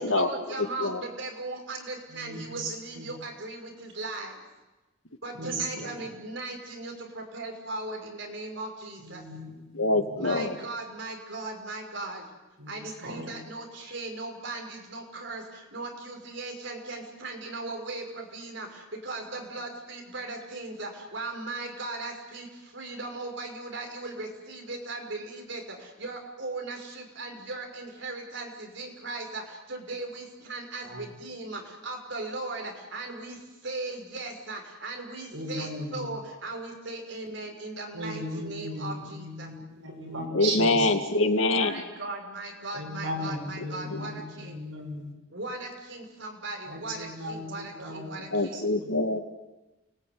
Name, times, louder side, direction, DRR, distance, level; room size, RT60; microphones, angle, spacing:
voice 1, 0.0-4.4 5.2-9.2 10.2-12.3 12.7-39.5 41.5-44.6 45.3-48.6, right 2 dB, 65° right, 2 dB, 5.8 m, -38 dB
voice 2, 2.1-3.1 5.3-6.1 9.0-10.4 12.6-13.3 30.8-31.1 35.3-36.1 37.9-40.9 42.7-45.1 46.7-49.0, equal, 80° right, 1 dB, 7.2 m, -37 dB
voice 3, 9.7-10.6 40.3-41.8 44.0-44.1 48.3-49.2, left 2 dB, 80° left, 6 dB, 2.3 m, -25 dB
29.5 x 20.0 x 9.7 m, 1.1 s
head